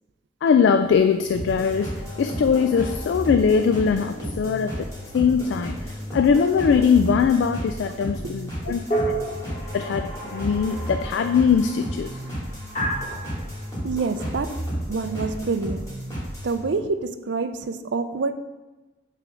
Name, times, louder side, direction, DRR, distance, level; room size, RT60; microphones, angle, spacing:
voice 1, 0.4-8.8 9.7-12.2, left 6 dB, 75° left, 8 dB, 0.3 m, -21 dB
sound 1, 0.6-16.8, left 1 dB, 45° right, 1.3 m, -50 dB
sound 2, 1.3-16.6, equal, 15° left, 2.2 m, -33 dB
sound 3, 6.5-7.1 8.9-10.2 12.8-13.6, right 1 dB, 35° left, 1.3 m, -29 dB
voice 2, 13.8-14.6 14.9-16.0 16.4-18.3, right 4 dB, 75° right, 10 dB, 0.5 m, -27 dB
6.8 x 3.4 x 6.1 m, 1.1 s
head